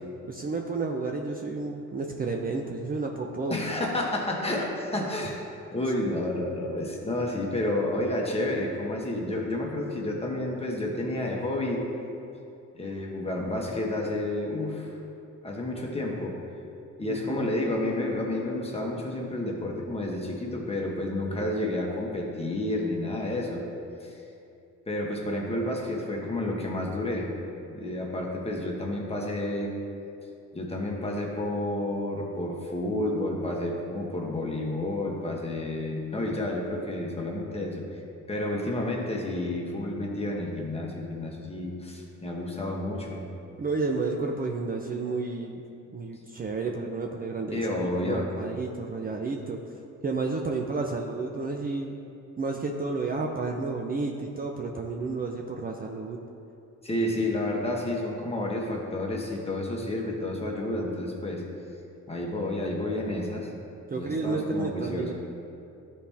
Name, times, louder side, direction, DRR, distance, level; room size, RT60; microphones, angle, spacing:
voice 1, 0.2-3.6 17.1-17.5 43.6-45.6 45.9-49.6 50.0-51.9 52.4-56.2 63.9-65.1, right 3 dB, 30° right, 1 dB, 0.6 m, -31 dB
voice 2, 3.5-5.4 5.7-11.8 12.7-14.9 15.4-16.4 17.0-23.6 24.0-24.2 24.9-27.3 27.6-29.7 30.5-37.8 38.3-43.3 47.5-48.3 56.8-61.4 62.1-63.5 63.9-65.1, left 1 dB, 20° left, -1 dB, 1.3 m, -30 dB
12.5 x 4.3 x 3.5 m, 2.7 s
cardioid pair, 90°, 30 cm